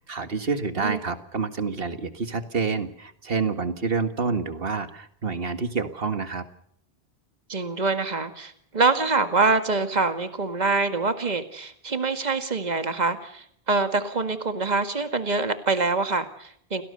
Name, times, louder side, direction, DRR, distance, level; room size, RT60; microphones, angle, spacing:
voice 1, 0.0-6.4, right 4 dB, 60° right, 10 dB, 1.9 m, -28 dB
voice 2, 7.5-16.8, right 3 dB, 40° right, 9 dB, 2.0 m, -25 dB
29.0 x 18.5 x 6.9 m, 0.68 s
omnidirectional pair, 1.1 m